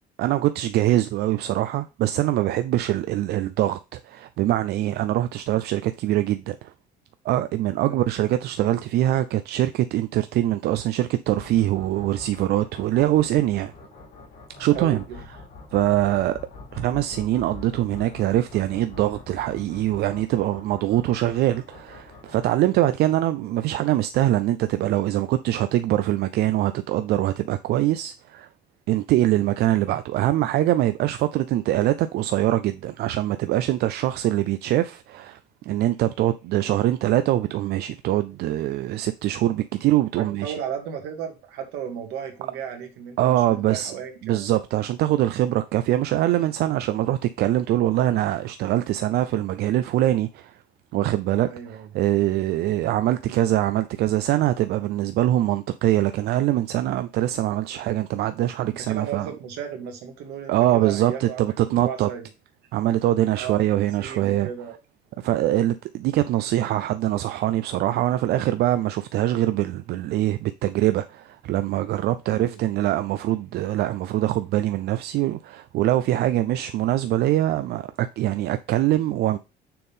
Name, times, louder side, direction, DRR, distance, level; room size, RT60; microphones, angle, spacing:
voice 1, 0.2-6.7 7.2-13.7 14.6-15.0 15.7-16.4 16.7-28.5 28.9-40.5 43.2-43.9 44.2-50.5 50.9-51.5 51.9-59.3 60.5-62.1 62.7-64.5 65.2-79.4, right 14 dB, 70° right, 0.4 m, -23 dB
sound 1, 11.3-23.0, left 3 dB, 75° left, 3.7 m, -44 dB
voice 2, 14.7-15.2 40.2-44.4 51.4-51.9 58.7-62.3 63.3-64.8 72.3-72.6, right 8 dB, 90° right, 1.9 m, -35 dB
6.8 x 3.7 x 5.5 m
cardioid pair, 110°, 17 cm